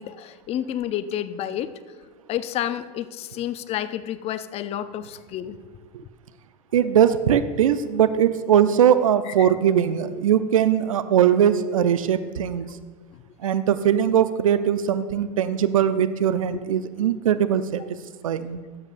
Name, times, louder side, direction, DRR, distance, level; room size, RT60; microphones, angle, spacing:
voice 1, 0.0-1.7 2.3-5.6 9.3-9.5 13.4-13.5, left 11 dB, 40° left, 13 dB, 0.5 m, -30 dB
voice 2, 6.7-12.8 13.4-17.8 18.2-18.6, right 9 dB, 90° right, 13 dB, 0.5 m, -20 dB
13.0 x 7.4 x 2.5 m, 1.5 s
hypercardioid pair, 100°, 17 cm